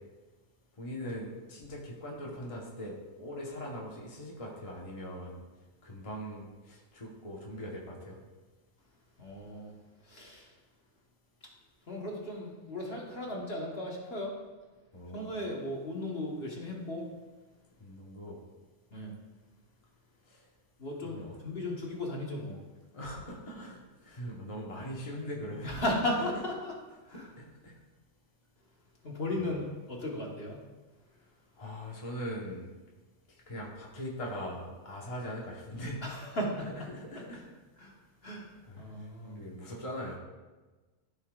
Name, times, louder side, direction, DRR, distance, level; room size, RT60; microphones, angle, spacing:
voice 1, 0.8-5.4 5.8-8.1 14.9-15.3 17.8-18.4 20.3-20.4 21.0-21.3 22.9-25.8 27.4-27.7 29.4-29.5 31.6-32.7 33.5-36.0 36.9-37.4 38.7-38.9 39.2-40.2, equal, 30° left, -3 dB, 1.2 m, -41 dB
voice 2, 9.2-9.8 10.0-10.5 11.9-14.3 15.1-17.0 18.9-19.1 20.8-22.6 25.6-26.7 27.0-27.3 29.0-30.6 36.0-36.9 37.1-37.2 37.8-37.9 38.2-38.5 38.8-39.4, left 1 dB, 55° left, -2 dB, 1.6 m, -36 dB
14.0 x 5.6 x 2.4 m, 1.2 s
omnidirectional pair, 1.2 m